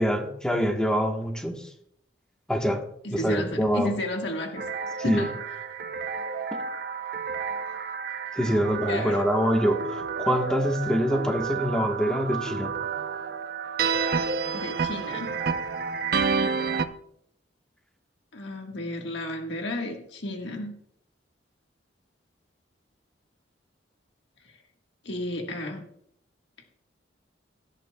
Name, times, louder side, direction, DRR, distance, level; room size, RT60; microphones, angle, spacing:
voice 1, 0.0-1.7 2.5-2.8 3.1-3.9 5.0-5.3 8.3-12.7, equal, 5° left, 2 dB, 1.3 m, -25 dB
voice 2, 3.0-4.6 5.0-5.3 8.9-9.2 14.5-15.4 18.3-20.7 25.0-25.8, left 1 dB, 65° left, 2 dB, 1.6 m, -32 dB
sound 1, 4.6-16.9, right 5 dB, 55° right, 0.7 m, -30 dB
17.5 x 11.5 x 2.3 m, 0.69 s
head